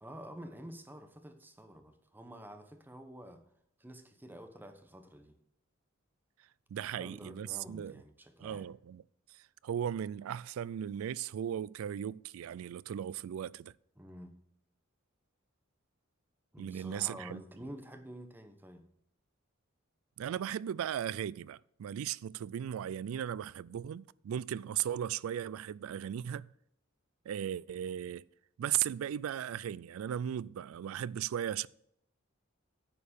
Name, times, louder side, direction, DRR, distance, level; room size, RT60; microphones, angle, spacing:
voice 1, 0.0-3.5 3.8-5.4 6.9-8.7 14.0-14.4 16.5-18.9, equal, 10° right, 0.9 m, -49 dB
voice 2, 6.7-8.0 8.4-9.0 9.3-13.7 16.6-17.4 20.2-26.5 27.3-28.2 28.6-31.7, right 10 dB, 80° right, 0.3 m, -37 dB
9.7 x 5.2 x 6.5 m
head